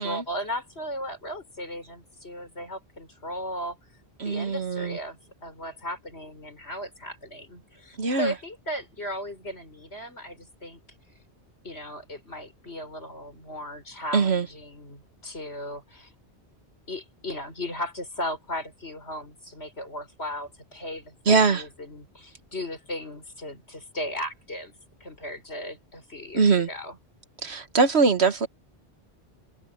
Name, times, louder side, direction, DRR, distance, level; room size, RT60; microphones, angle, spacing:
voice 1, 0.0-3.8 4.2-10.8 11.6-16.1 16.9-24.7 25.0-27.0, equal, 75° left, 5.9 m, -36 dB
voice 2, 4.2-5.0 8.0-8.3 14.1-14.5 21.3-21.6 26.3-26.7 27.4-28.5, right 4 dB, 70° right, 1.7 m, -22 dB
omnidirectional pair, 1.1 m